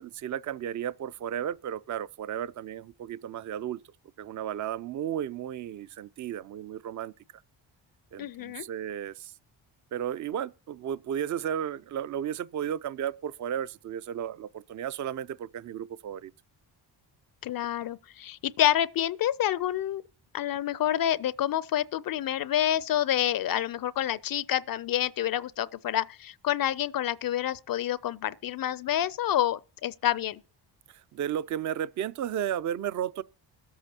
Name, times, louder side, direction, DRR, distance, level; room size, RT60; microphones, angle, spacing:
voice 1, 0.0-3.8 4.2-7.1 8.1-9.3 9.9-16.3 31.1-33.2, right 10 dB, 40° right, 0.5 m, -34 dB
voice 2, 8.2-8.6 17.4-20.0 20.3-30.4, left 11 dB, 50° left, 0.4 m, -28 dB
22.0 x 8.5 x 2.8 m
cardioid pair, 75°, 45 cm